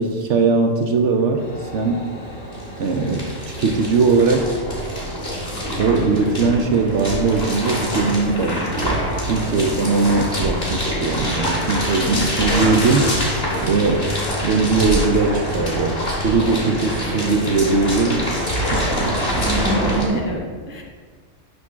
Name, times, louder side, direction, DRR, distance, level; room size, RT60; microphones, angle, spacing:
voice 1, 0.0-1.4 1.7-2.1 2.8-4.5 5.8-13.2 13.6-14.2 14.4-19.5, right 4 dB, 60° right, 4 dB, 0.8 m, -20 dB
sound 1, 1.4-18.8, left 1 dB, 60° left, 2.8 m, -37 dB
sound 2, 1.4-1.5 1.6-20.1, equal, 45° left, 2.2 m, -25 dB
voice 2, 19.4-20.8, right 2 dB, 20° right, 0 dB, 0.4 m, -25 dB
7.9 x 3.5 x 6.1 m, 1.5 s
omnidirectional pair, 1.5 m